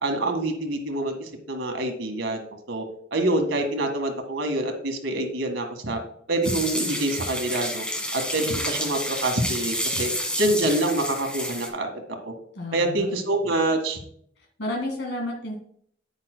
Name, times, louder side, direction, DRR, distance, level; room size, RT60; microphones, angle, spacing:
voice 1, 0.0-2.8 3.1-6.0 6.3-7.9 8.1-10.1 10.4-11.9 12.2-12.3 12.7-14.0, right 1 dB, 85° right, 4 dB, 1.9 m, -26 dB
sound 1, 6.4-11.7, equal, 5° left, 1.4 m, -30 dB
voice 2, 12.6-13.1 14.6-15.5, left 1 dB, 70° left, 0 dB, 2.0 m, -31 dB
9.8 x 9.6 x 2.2 m, 0.64 s
head